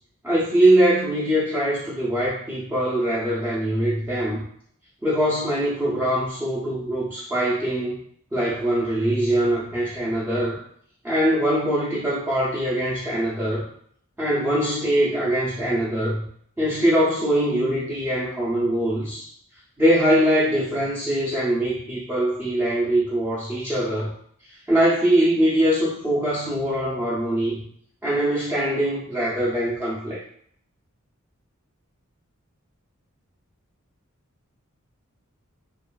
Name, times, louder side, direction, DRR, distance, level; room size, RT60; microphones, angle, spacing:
voice 1, 0.2-4.4 5.0-8.0 8.3-10.6 11.0-13.7 14.2-16.2 16.6-19.3 19.8-24.1 24.7-27.6 28.0-30.2, right 1 dB, 10° right, -8 dB, 0.5 m, -22 dB
2.9 x 2.4 x 2.3 m, 0.64 s
head